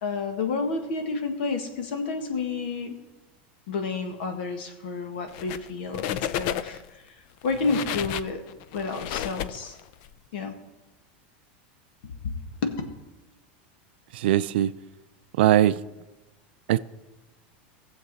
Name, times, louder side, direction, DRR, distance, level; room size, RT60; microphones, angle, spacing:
voice 1, 0.0-2.9 3.7-6.8 7.1-7.2 7.4-8.4 8.7-9.7 10.3-10.5 12.2-12.4 12.6-12.7, left 4 dB, 65° left, 1.7 m, -30 dB
sound 1, 5.3-5.7 5.9-6.9 7.4-10.1, left 11 dB, 45° left, 0.4 m, -32 dB
voice 2, 14.1-14.7 15.4-15.7 16.7-16.8, right 12 dB, 75° right, 0.4 m, -20 dB
18.5 x 7.3 x 4.1 m
supercardioid pair, 175°, 6 cm